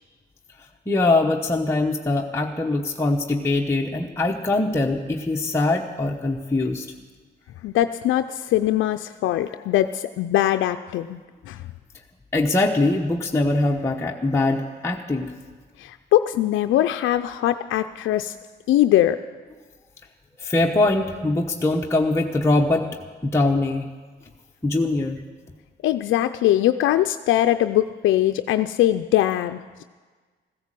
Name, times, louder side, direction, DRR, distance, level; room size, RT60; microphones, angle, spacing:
voice 1, 0.9-6.9 12.3-15.3 20.4-22.9 23.2-23.9 24.6-25.2, left 2 dB, 15° left, 0 dB, 1.0 m, -22 dB
voice 2, 7.6-11.2 11.5-11.6 15.8-18.3 18.7-19.2 25.8-29.8, left 13 dB, 80° left, 8 dB, 0.5 m, -21 dB
15.5 x 10.5 x 7.5 m, 1.4 s
cardioid pair, 90°, 20 cm